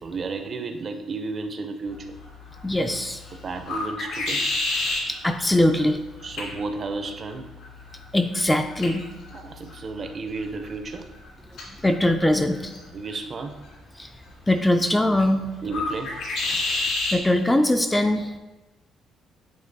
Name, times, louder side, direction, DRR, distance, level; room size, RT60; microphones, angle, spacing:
voice 1, 0.0-2.1 3.3-4.4 6.2-7.5 9.3-11.1 12.9-13.6 15.6-16.2, right 3 dB, 40° right, 7 dB, 0.6 m, -33 dB
sound 1, 1.9-17.2, left 2 dB, 80° left, 2.2 m, -33 dB
voice 2, 2.6-3.2 5.1-6.0 8.1-9.0 11.8-12.7 14.0-14.1 14.5-15.4 16.7-18.3, left 1 dB, 10° left, 6 dB, 0.3 m, -22 dB
8.6 x 3.2 x 4.0 m, 1.1 s
cardioid pair, 130°, 0 cm